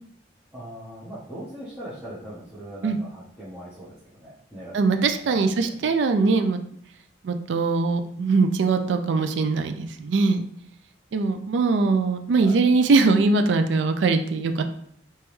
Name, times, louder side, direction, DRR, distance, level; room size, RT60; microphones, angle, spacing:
voice 1, 0.5-4.9 5.2-5.9 12.4-12.6, right 1 dB, 10° right, -11 dB, 0.9 m, -40 dB
voice 2, 4.7-6.6 7.2-10.5 11.1-14.6, right 4 dB, 70° right, 8 dB, 0.4 m, -21 dB
3.4 x 3.0 x 3.1 m, 0.67 s
head